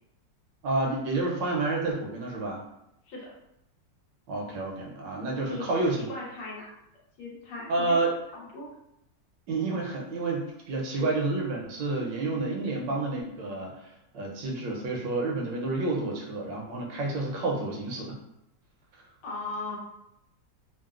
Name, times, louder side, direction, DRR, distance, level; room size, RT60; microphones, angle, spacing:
voice 1, 0.6-2.6 4.3-6.1 7.7-8.1 9.5-18.2, right 2 dB, 80° right, -1 dB, 1.3 m, -29 dB
voice 2, 5.5-6.7 7.2-8.0 8.3-8.6 10.9-11.1 19.2-19.8, left 3 dB, 75° left, -4 dB, 1.5 m, -38 dB
3.7 x 2.0 x 2.3 m, 0.81 s
omnidirectional pair, 2.0 m